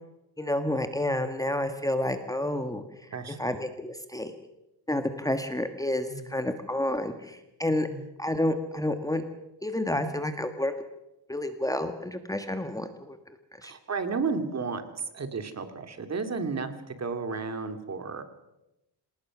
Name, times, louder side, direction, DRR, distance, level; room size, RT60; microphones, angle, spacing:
voice 1, 0.4-2.8 3.4-4.3 4.9-7.9 8.2-9.2 9.6-10.7 11.3-13.2 13.6-13.7, left 1 dB, 10° left, 7 dB, 1.6 m, -29 dB
voice 2, 3.1-3.6 6.1-6.4 7.9-8.1 13.6-18.2, right 4 dB, 40° right, 8 dB, 2.5 m, -33 dB
27.0 x 19.0 x 6.2 m, 0.92 s
cardioid pair, 125°, 41 cm